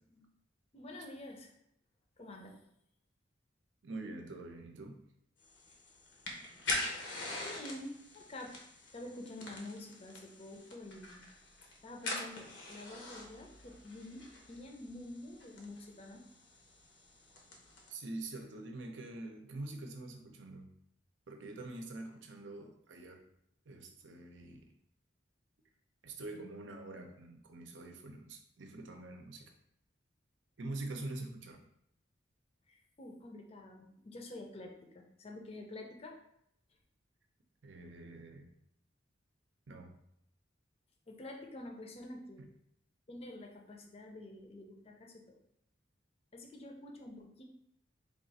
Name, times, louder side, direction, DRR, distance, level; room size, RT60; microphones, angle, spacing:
voice 1, 0.7-1.5 2.2-2.6 7.4-8.6 8.9-11.2 11.8-16.2 32.7-36.2 41.1-42.4 43.1-45.4 46.3-47.4, left 1 dB, 35° left, 2 dB, 0.5 m, -48 dB
voice 2, 3.8-5.0 17.9-20.7 21.3-23.2 23.7-24.7 26.0-29.5 30.6-31.6 37.6-38.5 39.7-39.9 42.4-42.5, right 2 dB, 75° right, 4 dB, 0.6 m, -45 dB
sound 1, 5.4-17.9, left 2 dB, 80° left, 0.8 m, -44 dB
3.5 x 2.4 x 4.0 m, 0.76 s
head